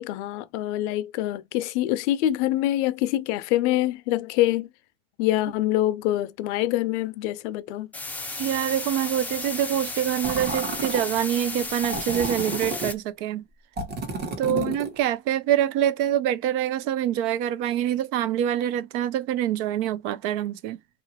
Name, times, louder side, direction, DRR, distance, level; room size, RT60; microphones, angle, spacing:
voice 1, 0.0-4.7 5.2-7.9 14.5-14.8, left 14 dB, 80° left, 0.5 m, -25 dB
sound 1, 7.9-12.9, left 3 dB, 5° left, 0.4 m, -34 dB
voice 2, 8.4-13.4 14.4-20.8, right 11 dB, 65° right, 0.5 m, -25 dB
sound 2, 10.2-11.1 11.8-12.9 13.8-15.0, right 3 dB, 30° right, 1.0 m, -31 dB
2.9 x 2.4 x 2.7 m
supercardioid pair, 130°, 34 cm